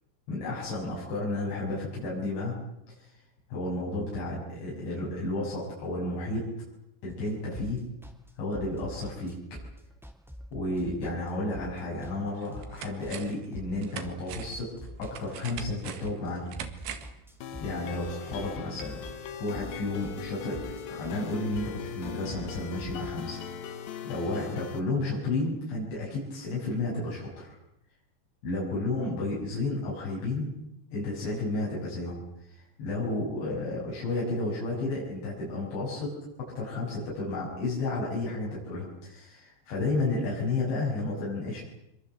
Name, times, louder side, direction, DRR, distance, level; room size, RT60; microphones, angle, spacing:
voice 1, 0.3-2.6 2.9-3.0 3.5-6.5 7.0-7.8 8.4-9.4 10.5-14.7 15.0-16.5 17.6-18.9 19.3-23.8 24.1-27.6 28.4-30.5 30.9-32.2 32.8-36.1 36.6-41.6, left 2 dB, 85° left, -5 dB, 8.8 m, -32 dB
sound 1, 7.1-23.5, equal, ahead, 2.1 m, -46 dB
sound 2, 12.4-13.5 13.8-17.2 17.5-17.6, right 9 dB, 85° right, 4.0 m, -42 dB
sound 3, 17.4-24.8, left 8 dB, 65° left, 2.8 m, -40 dB
25.5 x 22.5 x 7.9 m, 0.83 s
omnidirectional pair, 5.0 m